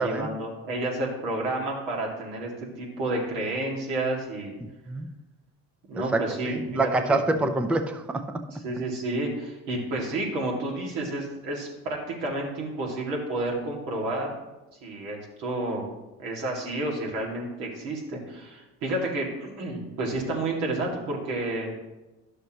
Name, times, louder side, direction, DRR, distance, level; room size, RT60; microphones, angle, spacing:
voice 1, 0.0-2.5 2.8-4.6 5.9-6.8 7.3-7.5 8.5-14.3 14.8-15.9 16.2-21.7, right 2 dB, 90° right, -2 dB, 2.2 m, -30 dB
voice 2, 6.4-8.2, right 2 dB, 5° right, 8 dB, 0.4 m, -25 dB
10.5 x 6.6 x 3.0 m, 1.0 s
cardioid pair, 115°, 35 cm